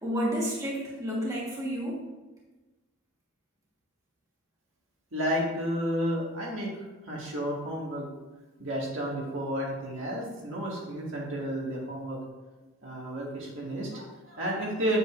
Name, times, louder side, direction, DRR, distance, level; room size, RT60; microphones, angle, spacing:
voice 1, 0.0-2.0, equal, 15° right, -5 dB, 1.5 m, -30 dB
voice 2, 5.1-6.7 7.0-8.1 8.6-12.2 12.8-15.0, equal, 60° right, -4 dB, 2.0 m, -31 dB
8.0 x 7.8 x 2.6 m, 1.2 s
head